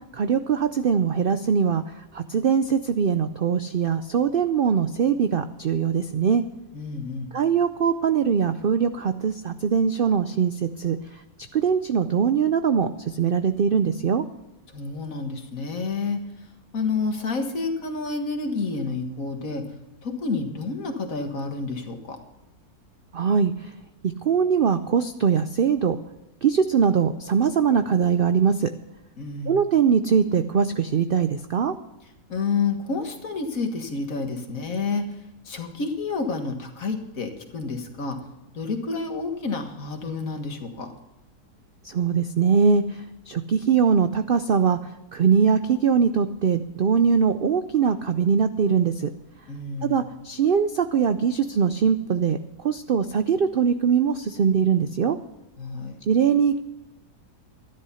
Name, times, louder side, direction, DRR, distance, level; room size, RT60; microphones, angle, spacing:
voice 1, 0.1-6.4 7.3-11.2 11.5-14.3 23.1-23.7 24.0-26.0 26.4-28.7 29.5-31.8 41.8-49.1 49.8-55.2 56.1-56.6, right 6 dB, 70° right, 10 dB, 0.5 m, -22 dB
voice 2, 6.7-7.4 14.7-16.2 16.7-19.7 20.0-22.2 29.2-29.6 32.3-35.2 35.5-38.2 38.5-40.9 49.5-50.0 55.6-56.0, left 4 dB, 60° left, 4 dB, 2.0 m, -29 dB
13.0 x 11.0 x 5.6 m, 0.96 s
omnidirectional pair, 1.7 m